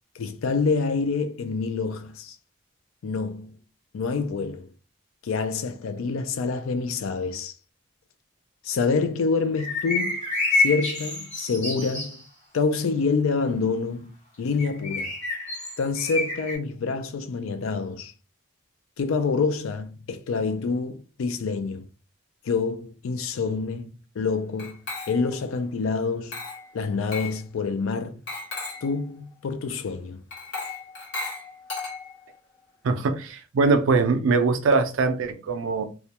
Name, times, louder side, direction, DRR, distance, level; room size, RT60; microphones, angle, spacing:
voice 1, 0.2-2.4 3.0-3.6 3.9-4.7 5.2-7.5 8.6-10.2 10.5-12.2 12.5-15.1 15.8-18.1 19.0-21.9 22.4-26.4 26.7-28.2 28.8-30.2, left 4 dB, 90° left, 0.4 m, -27 dB
sound 1, 9.6-12.2 14.6-16.6, left 3 dB, 35° left, 1.0 m, -28 dB
Glass, 24.6-25.4 26.3-26.7 27.1-27.4 28.3-28.9 30.3-32.3, left 3 dB, 55° left, 1.0 m, -35 dB
voice 2, 32.8-35.8, right 4 dB, 80° right, 0.4 m, -22 dB
2.3 x 2.1 x 2.8 m
head